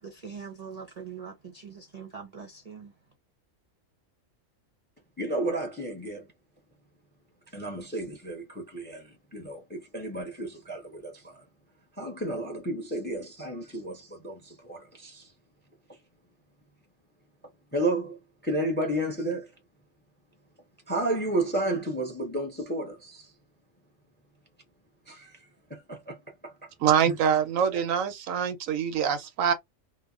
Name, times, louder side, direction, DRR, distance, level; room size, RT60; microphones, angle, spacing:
voice 1, 0.0-2.9, right 6 dB, 45° right, 0.5 m, -42 dB
voice 2, 5.2-6.2 7.5-8.4 8.7-9.0 9.3-9.6 9.9-10.8 12.0-13.9 14.2-14.3 14.7-14.8 17.7-18.1 18.5-19.4 20.9-22.9 27.1-27.2, right 1 dB, 10° left, 0.5 m, -30 dB
voice 3, 26.8-29.5, right 8 dB, 90° right, 1.1 m, -25 dB
2.9 x 2.1 x 2.3 m
omnidirectional pair, 1.3 m